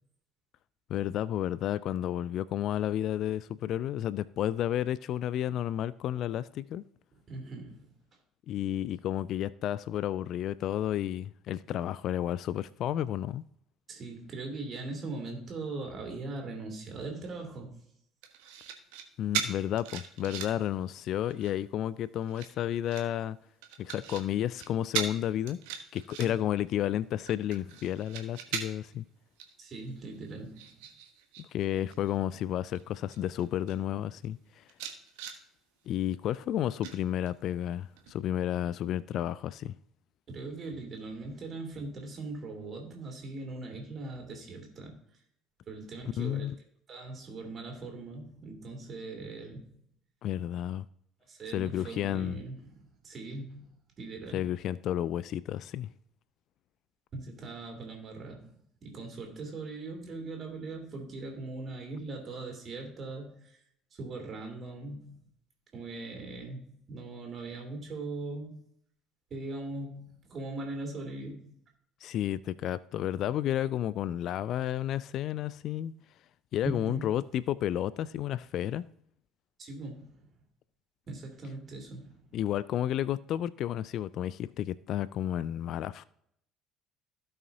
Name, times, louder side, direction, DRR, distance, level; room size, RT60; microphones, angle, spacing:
voice 1, 0.9-6.8 8.5-13.4 19.2-23.4 23.8-25.6 25.9-29.0 31.4-34.6 35.9-39.7 46.2-46.5 50.2-50.9 51.5-52.4 54.3-55.9 72.0-75.9 76.5-78.8 82.3-86.0, left 11 dB, 50° left, 0.3 m, -31 dB
voice 2, 7.3-7.9 13.9-17.8 26.2-26.3 29.6-30.7 40.3-45.0 45.7-46.5 46.9-49.7 51.3-54.5 57.1-58.5 58.8-63.6 64.0-65.2 65.7-68.6 69.3-71.5 76.6-77.2 79.6-80.3 81.1-82.2, right 3 dB, 40° right, 3.0 m, -40 dB
sound 1, 18.2-19.0 19.3-20.7 21.1-21.6 22.2-23.0 23.6-24.2 24.5-24.7 24.9-25.1 25.5-26.6 27.0-28.9 29.4-29.5 29.9-31.4 31.7-32.1 32.8-32.9 33.1-33.8 34.2-34.3 34.7-35.4 36.8-37.5 38.0-38.1, right 8 dB, 65° right, 1.1 m, -38 dB
16.5 x 5.6 x 2.8 m
figure-of-eight pair, 55°, 0 cm